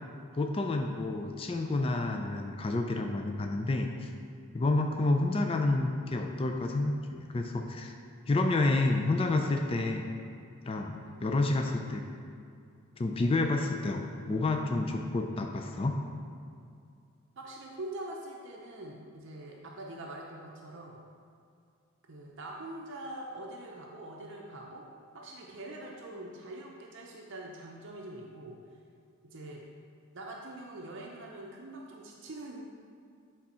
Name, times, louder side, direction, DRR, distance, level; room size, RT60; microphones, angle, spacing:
voice 1, 0.3-4.1 4.5-7.9 8.3-10.1 10.7-12.0 13.0-16.0, left 2 dB, 25° left, 3 dB, 0.3 m, -29 dB
voice 2, 17.4-21.0 22.1-24.8 25.1-28.6 29.2-29.6 30.1-32.7, right 1 dB, 55° right, -2 dB, 0.6 m, -44 dB
8.4 x 3.6 x 4.3 m, 2.4 s
head